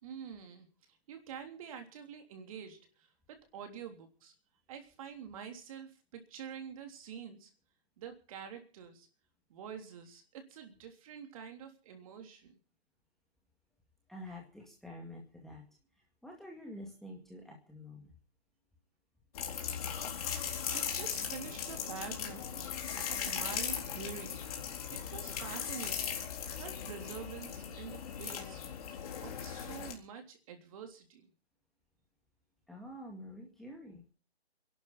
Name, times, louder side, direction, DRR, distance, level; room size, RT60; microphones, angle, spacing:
voice 1, 0.0-0.7 1.1-4.3 4.7-7.5 8.0-9.1 9.5-12.6 20.7-22.7 23.1-24.4 24.9-26.2 26.5-28.6 29.2-31.3, right 7 dB, 35° right, 5 dB, 3.4 m, -47 dB
voice 2, 14.1-15.7 16.0-18.1 32.7-34.0, left 1 dB, ahead, -1 dB, 2.1 m, -48 dB
sound 1, 19.4-29.9, left 8 dB, 35° left, 4.0 m, -38 dB
28.0 x 12.0 x 4.1 m, 0.38 s
hypercardioid pair, 150°, 32 cm